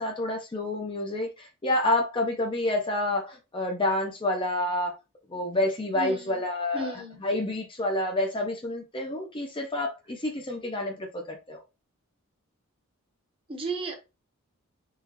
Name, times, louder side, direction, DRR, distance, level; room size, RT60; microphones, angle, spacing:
voice 1, 0.0-4.9 5.3-6.9 7.2-11.6, left 1 dB, 20° left, 0.5 m, -28 dB
voice 2, 6.0-6.4 6.7-7.2 13.5-13.9, right 2 dB, 25° right, 0.8 m, -34 dB
3.7 x 2.4 x 2.8 m
head